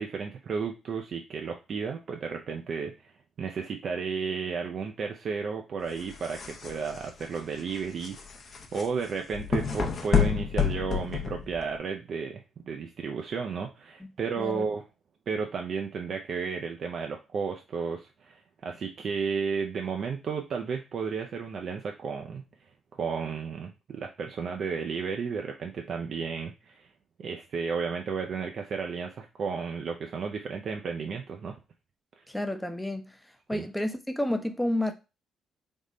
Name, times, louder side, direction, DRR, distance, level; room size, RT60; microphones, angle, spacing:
voice 1, 0.0-3.1 3.4-8.3 8.7-14.8 15.3-22.4 22.9-26.9 27.2-31.6 32.2-32.3 33.5-33.6, right 5 dB, 55° right, 0.4 m, -33 dB
sound 1, 5.9-11.8, left 7 dB, 50° left, 0.6 m, -30 dB
voice 2, 32.3-33.2 33.5-34.9, left 1 dB, 5° left, 0.6 m, -30 dB
3.5 x 2.1 x 3.7 m
cardioid pair, 90°, 0 cm